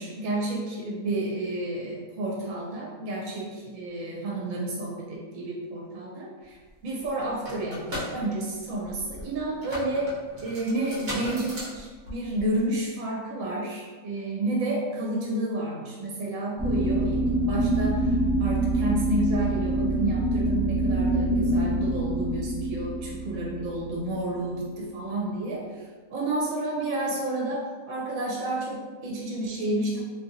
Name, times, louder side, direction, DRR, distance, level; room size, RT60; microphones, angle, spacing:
voice 1, 0.0-10.1 10.4-30.0, right 1 dB, 70° right, -4 dB, 1.1 m, -30 dB
sound 1, 6.7-6.8 7.0-12.7, equal, 50° right, 1.0 m, -37 dB
sound 2, 16.6-24.5, right 1 dB, 5° right, 1.0 m, -26 dB
2.8 x 2.6 x 2.5 m, 1.4 s
omnidirectional pair, 1.5 m